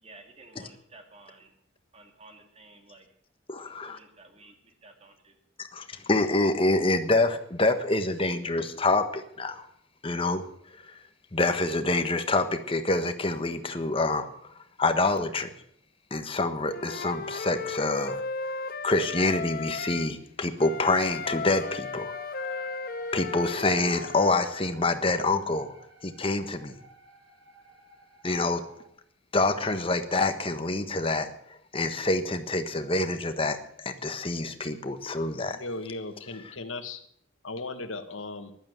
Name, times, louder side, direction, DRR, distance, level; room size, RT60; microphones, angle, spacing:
voice 1, 0.0-1.5 1.9-3.1 3.6-5.3, right 2 dB, 30° right, 4 dB, 2.5 m, -53 dB
voice 2, 3.5-4.0 5.7-9.6 10.0-10.4 10.9-11.0 11.3-14.5 14.8-15.5 16.1-18.5 18.8-22.1 22.4-22.7 23.1-25.7 26.0-26.8 28.2-28.6 29.3-31.3 31.7-35.6, left 2 dB, 30° left, 8 dB, 1.4 m, -26 dB
Wind instrument woodwind instrument, 16.7-20.1 20.6-24.4, left 4 dB, 50° left, 0.8 m, -35 dB
sound 1, 21.1-28.8, equal, 75° right, 4.1 m, -50 dB
voice 3, 35.5-37.0 37.4-38.6, left 2 dB, 90° left, 9 dB, 1.7 m, -37 dB
15.0 x 12.0 x 8.0 m, 0.69 s
head